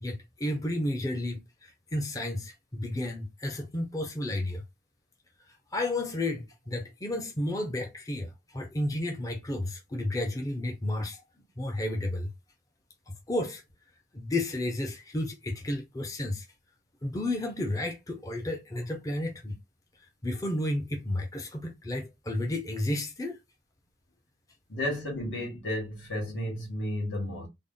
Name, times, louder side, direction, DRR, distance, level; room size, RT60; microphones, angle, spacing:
voice 1, 0.0-4.6 5.7-11.2 11.6-12.3 13.3-13.6 14.1-16.5 17.0-19.5 20.2-23.4, left 1 dB, 20° left, 0.5 m, -32 dB
voice 2, 24.7-27.5, left 1 dB, 85° left, 1.8 m, -32 dB
3.5 x 2.0 x 3.8 m
head